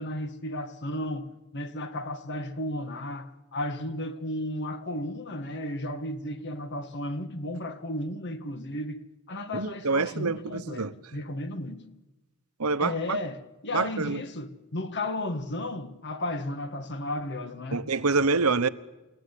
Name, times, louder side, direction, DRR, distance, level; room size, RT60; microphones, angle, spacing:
voice 1, 0.0-11.8 12.8-17.9, left 1 dB, 55° left, 1.7 m, -34 dB
voice 2, 9.5-10.9 12.6-13.2 13.7-14.2 17.7-18.7, right 4 dB, 85° right, 1.0 m, -26 dB
28.0 x 16.5 x 9.9 m
head